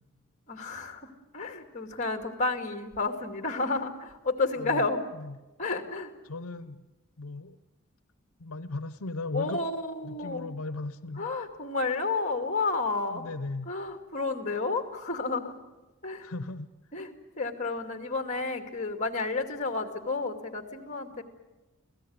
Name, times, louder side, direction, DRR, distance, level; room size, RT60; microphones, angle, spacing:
voice 1, 0.5-5.0 5.6-6.1 9.3-10.5 11.2-13.3 13.7-15.6 16.0-16.3 16.9-21.2, left 3 dB, 35° left, 6 dB, 2.3 m, -31 dB
voice 2, 6.2-6.8 7.2-7.6 8.4-9.6 10.0-11.3 13.1-13.7 16.2-16.7, left 2 dB, 85° left, 14 dB, 0.8 m, -36 dB
27.5 x 17.0 x 9.5 m, 1.1 s
head